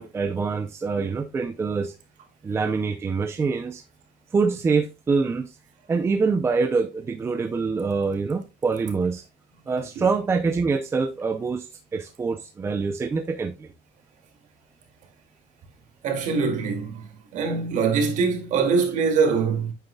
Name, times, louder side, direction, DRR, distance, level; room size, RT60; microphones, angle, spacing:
voice 1, 0.0-1.9 2.4-3.8 4.3-5.6 5.9-9.2 9.7-13.7, right 4 dB, 15° right, 0.5 m, -25 dB
voice 2, 16.0-17.1 17.3-19.7, right 5 dB, 50° right, 2.4 m, -23 dB
9.1 x 7.3 x 2.3 m
cardioid pair, 175°, 17 cm